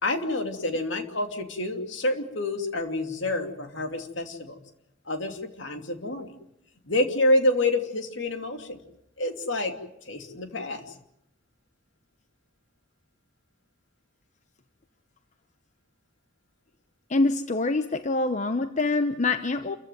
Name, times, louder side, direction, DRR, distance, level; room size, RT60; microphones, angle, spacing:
voice 1, 0.0-4.6 5.1-6.3 6.9-8.8 9.2-9.8 10.0-10.9, left 1 dB, 70° left, 6 dB, 2.7 m, -28 dB
voice 2, 17.1-19.8, left 3 dB, 40° left, 9 dB, 0.9 m, -25 dB
28.5 x 15.5 x 9.3 m, 0.82 s
head